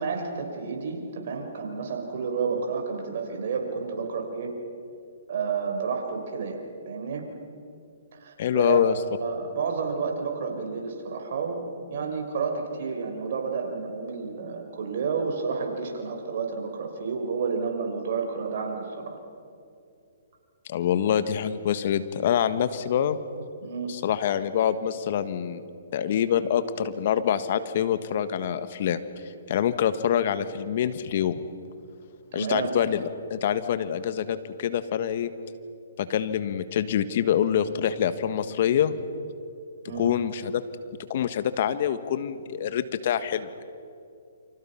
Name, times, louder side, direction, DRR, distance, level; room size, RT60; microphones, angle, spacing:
voice 1, 0.0-4.5 5.3-6.6 6.9-7.2 8.1-8.8 9.2-19.2 23.6-23.9 32.3-32.8 39.9-40.1, right 5 dB, 55° right, 3 dB, 5.0 m, -30 dB
voice 2, 8.4-8.9 20.7-23.2 23.9-25.6 25.9-29.0 29.5-31.4 32.3-35.3 36.0-38.9 39.9-40.6 41.1-43.6, left 9 dB, 55° left, 12 dB, 1.5 m, -25 dB
29.0 x 25.5 x 5.9 m, 2.5 s
hypercardioid pair, 135°, 0 cm